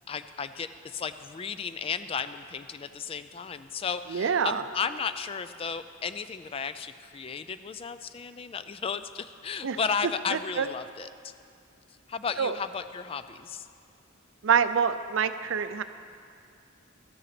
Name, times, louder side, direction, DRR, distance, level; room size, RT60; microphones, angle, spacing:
voice 1, 0.1-11.3 12.1-13.7, left 6 dB, 30° left, 12 dB, 0.3 m, -34 dB
voice 2, 4.1-4.6 9.6-9.8 10.3-10.7 12.4-12.6 14.4-15.8, right 6 dB, 75° right, 11 dB, 0.5 m, -26 dB
13.5 x 6.6 x 5.9 m, 2.4 s
head